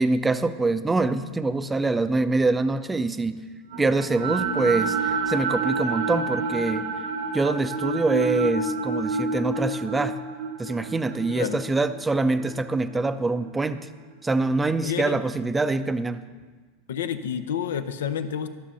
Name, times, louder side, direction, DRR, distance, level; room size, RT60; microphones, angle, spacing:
voice 1, 0.0-3.4 3.8-6.9 7.3-10.2 10.6-13.9 14.2-16.2, right 3 dB, 10° right, 12 dB, 0.5 m, -24 dB
sound 1, 3.7-13.9, right 3 dB, 75° right, 1.2 m, -29 dB
voice 2, 11.3-11.6 14.8-15.2 16.9-18.5, left 8 dB, 90° left, 11 dB, 0.6 m, -29 dB
12.5 x 6.4 x 5.6 m, 1.4 s
supercardioid pair, 125°, 0 cm